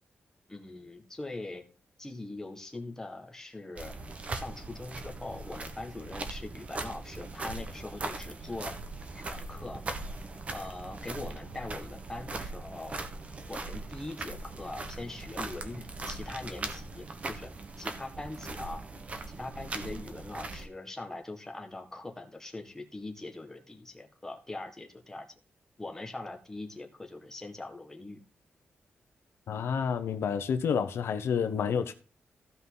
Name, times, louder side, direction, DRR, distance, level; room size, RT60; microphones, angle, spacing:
voice 1, 0.5-1.6 2.0-3.9 4.3-8.8 9.1-9.8 10.5-13.0 13.5-17.5 17.8-18.8 19.3-25.3 25.8-28.2, left 2 dB, 10° left, 1.6 m, -42 dB
sound 1, 3.8-20.7, right 3 dB, 30° right, 1.2 m, -40 dB
voice 2, 29.5-31.9, left 7 dB, 85° left, 0.9 m, -29 dB
15.5 x 5.5 x 3.9 m
wide cardioid pair, 170°, 4 cm